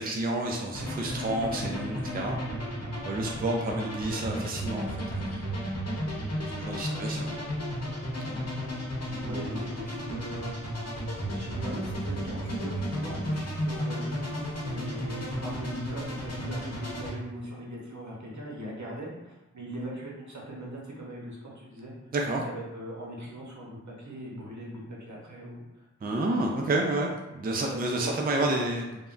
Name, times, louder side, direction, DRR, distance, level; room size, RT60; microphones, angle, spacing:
voice 1, 0.0-2.5 3.0-5.4 6.4-7.3 9.1-9.6 22.1-22.4 26.0-28.8, right 2 dB, 30° right, 1 dB, 0.4 m, -30 dB
sound 1, 0.7-17.1, equal, 60° left, 0.8 m, -33 dB
voice 2, 6.9-7.3 8.2-8.4 9.3-10.6 11.2-21.9 22.2-25.9 27.7-28.7, right 1 dB, 70° right, -3 dB, 0.8 m, -40 dB
3.4 x 2.1 x 2.5 m, 0.98 s
wide cardioid pair, 45°, 30 cm